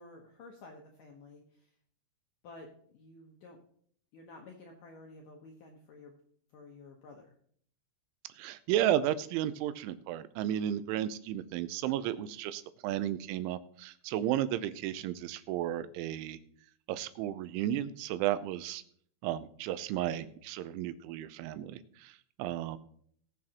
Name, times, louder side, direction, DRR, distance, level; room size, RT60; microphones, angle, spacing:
voice 1, 0.0-1.7 2.4-3.6 4.1-6.1 6.5-7.3, left 2 dB, 90° left, 1 dB, 1.8 m, -52 dB
voice 2, 8.2-16.4 16.9-18.8 19.2-22.8, right 12 dB, 85° right, 13 dB, 3.0 m, -33 dB
19.5 x 7.5 x 2.9 m, 0.62 s
omnidirectional pair, 5.5 m